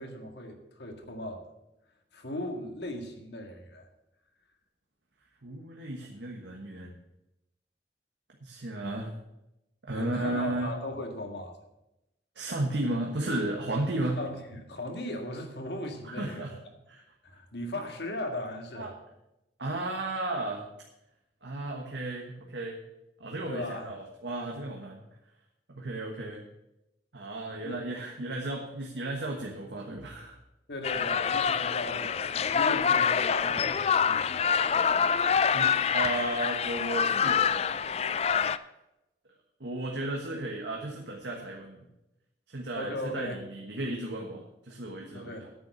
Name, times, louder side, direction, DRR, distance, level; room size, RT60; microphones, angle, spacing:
voice 1, 0.0-1.5 2.1-3.9 9.9-11.5 14.2-16.5 17.2-18.9 23.5-23.9 27.5-27.9 30.7-34.4 42.7-43.4 45.1-45.5, left 1 dB, 70° left, 4 dB, 1.8 m, -38 dB
voice 2, 5.4-6.9 8.4-9.1 9.9-10.7 12.3-14.2 16.0-16.6 16.9-17.0 18.7-18.9 19.6-20.7 21.4-22.8 23.2-25.0 25.7-26.4 27.1-30.4 35.5-37.9 39.6-41.8 42.5-45.5, right 2 dB, 85° right, 0 dB, 1.4 m, -34 dB
sound 1, 30.8-38.6, left 7 dB, 35° left, 0.3 m, -26 dB
9.2 x 6.8 x 8.1 m, 0.91 s
head